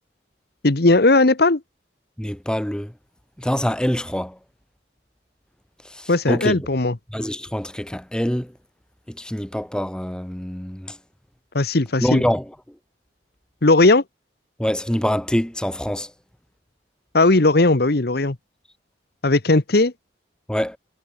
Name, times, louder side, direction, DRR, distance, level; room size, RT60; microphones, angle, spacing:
voice 1, 0.6-1.6 6.1-7.0 11.5-12.2 13.6-14.0 17.1-18.4 19.2-19.9, left 2 dB, 60° left, 1.2 m, -17 dB
voice 2, 2.2-2.9 3.4-4.4 5.9-6.7 7.1-8.5 9.1-11.0 12.0-12.4 14.6-16.1 20.5-20.8, equal, 5° left, 0.7 m, -25 dB
head